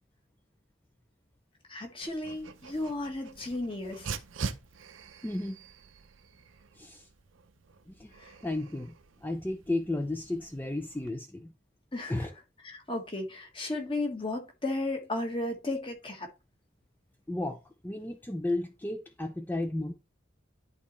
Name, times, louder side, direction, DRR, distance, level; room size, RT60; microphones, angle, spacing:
voice 1, 1.7-4.1 8.2-8.3 11.9-12.3 12.6-16.3, left 2 dB, 25° left, 1.4 m, -34 dB
Dog, 2.0-11.1, right 5 dB, 80° right, 0.6 m, -44 dB
voice 2, 5.2-5.6 6.8-7.1 7.9-8.1 8.4-9.0 9.2-11.5 12.1-12.3 17.3-19.9, left 2 dB, 10° left, 0.4 m, -33 dB
10.5 x 4.1 x 3.1 m
head